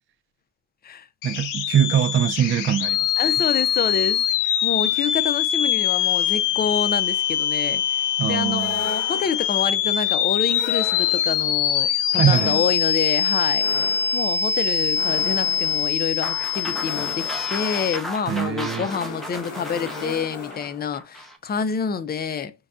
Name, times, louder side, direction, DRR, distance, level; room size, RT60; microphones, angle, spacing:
sound 1, 1.2-18.0, left 9 dB, 85° left, 0.5 m, -23 dB
voice 1, 1.2-3.3 8.2-8.9 12.1-12.6 18.3-18.9, right 9 dB, 40° right, 0.4 m, -22 dB
voice 2, 3.2-4.3 4.6-7.8 8.3-13.7 14.1-22.5, left 6 dB, 30° left, 0.5 m, -27 dB
sound 2, 8.6-9.6 10.4-11.5 12.2-21.0, left 3 dB, 65° left, 1.5 m, -38 dB
sound 3, 16.2-21.4, equal, ahead, 0.7 m, -35 dB
5.3 x 2.2 x 2.4 m
cardioid pair, 90°, 30 cm